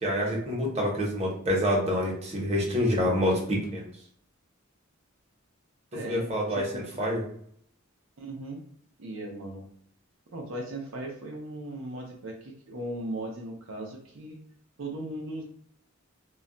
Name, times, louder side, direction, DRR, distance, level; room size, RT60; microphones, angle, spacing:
voice 1, 0.0-3.9 6.0-7.2, equal, 30° right, -3 dB, 0.8 m, -27 dB
voice 2, 5.9-7.1 8.2-8.6 9.0-9.6 10.3-14.4 14.8-15.4, right 1 dB, 75° right, 0 dB, 0.5 m, -38 dB
2.2 x 2.1 x 3.7 m, 0.64 s
head